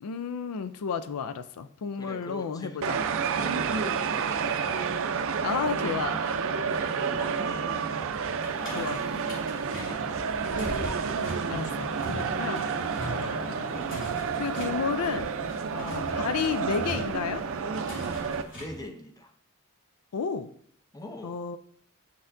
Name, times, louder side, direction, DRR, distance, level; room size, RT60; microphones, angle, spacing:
voice 1, 0.0-3.0 5.4-6.2 8.8-9.0 11.0-12.7 13.0-13.8 14.4-15.3 15.7-17.5 20.1-20.5 21.2-21.6, left 6 dB, 80° left, 12 dB, 0.4 m, -32 dB
voice 2, 2.0-4.9 5.8-6.0 6.5-8.1 8.6-9.3 9.7-10.3 12.4-12.5 13.2-13.4 15.7-16.0 18.5-19.3 20.9-21.3, left 1 dB, 15° left, 6 dB, 0.6 m, -43 dB
sound 1, 2.8-18.4, right 6 dB, 65° right, 0.5 m, -30 dB
sound 2, 8.4-18.9, right 1 dB, 60° left, 2.8 m, -41 dB
6.8 x 6.4 x 2.6 m, 0.64 s
head